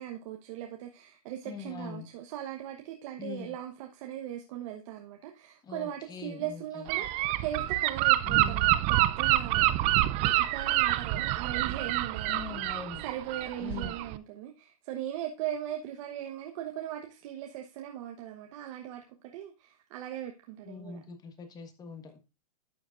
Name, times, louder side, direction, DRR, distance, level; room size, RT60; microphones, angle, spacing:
voice 1, 0.0-9.9 10.2-19.0 19.3-21.1, right 11 dB, 55° right, 3 dB, 1.1 m, -39 dB
voice 2, 1.5-2.1 3.2-3.5 5.6-6.8 8.2-8.7 12.3-13.0 13.6-13.9 20.6-22.2, left 6 dB, 20° left, 7 dB, 1.4 m, -42 dB
Gull seagull / Wind, 6.9-14.2, right 16 dB, 35° right, 0.5 m, -27 dB
12.0 x 7.1 x 2.5 m, 0.29 s
hypercardioid pair, 130°, 19 cm